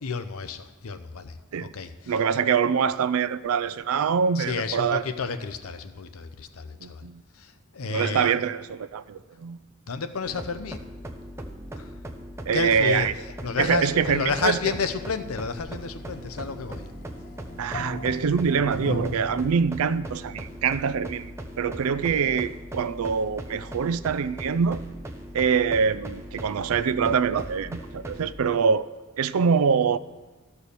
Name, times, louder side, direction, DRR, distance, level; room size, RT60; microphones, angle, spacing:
voice 1, 0.0-2.1 4.4-7.0 7.4-8.4 9.9-10.8 11.8-11.9 12.5-13.1 13.4-16.9, left 5 dB, 90° left, 0.7 m, -31 dB
voice 2, 2.1-5.0 6.8-7.2 7.8-9.6 12.5-13.1 13.6-14.6 17.6-21.3 21.6-24.8 25.3-28.9 29.2-30.0, right 6 dB, 85° right, 0.4 m, -24 dB
sound 1, 10.3-28.3, equal, 15° right, 0.7 m, -39 dB
sound 2, 13.7-19.5, left 2 dB, 40° left, 0.6 m, -38 dB
13.0 x 4.6 x 6.8 m
head